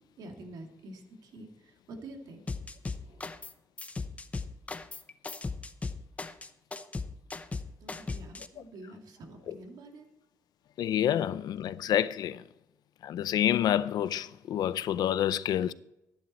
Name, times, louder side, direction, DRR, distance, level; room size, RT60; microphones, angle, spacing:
voice 1, 0.2-2.4 2.9-3.3 7.8-10.1, right 2 dB, 85° right, 2.3 m, -47 dB
sound 1, 2.5-3.5 3.8-8.5, left 3 dB, 20° left, 0.7 m, -37 dB
voice 2, 10.8-12.4 13.0-15.7, left 10 dB, 80° left, 0.5 m, -28 dB
13.0 x 11.0 x 4.3 m
cardioid pair, 140°, 7 cm